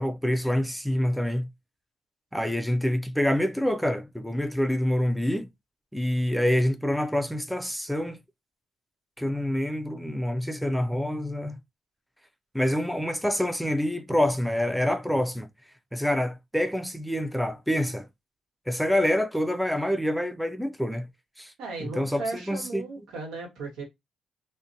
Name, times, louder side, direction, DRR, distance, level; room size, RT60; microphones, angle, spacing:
voice 1, 0.0-1.5 2.3-5.5 5.9-8.2 9.2-11.6 12.5-15.5 15.9-18.1 18.7-21.1 21.4-21.5 21.8-22.8, left 1 dB, ahead, 0.3 m, -26 dB
voice 2, 21.6-23.8, right 3 dB, 85° right, 1.2 m, -36 dB
2.7 x 2.1 x 2.6 m
cardioid pair, 90°, 0 cm